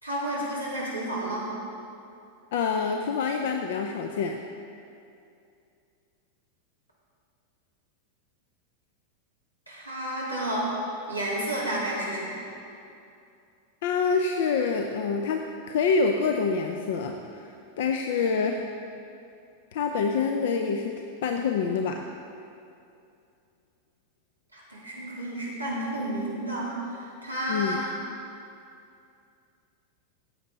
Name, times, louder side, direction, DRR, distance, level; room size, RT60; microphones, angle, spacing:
voice 1, 0.0-1.5 9.7-10.7 11.1-12.4 24.5-27.9, right 1 dB, 90° left, -7 dB, 3.0 m, -31 dB
voice 2, 2.5-4.4 13.8-18.7 19.7-22.0 27.5-27.8, left 5 dB, 55° left, 4 dB, 0.6 m, -26 dB
14.5 x 8.6 x 4.0 m, 2.5 s
figure-of-eight pair, 90°, 0 cm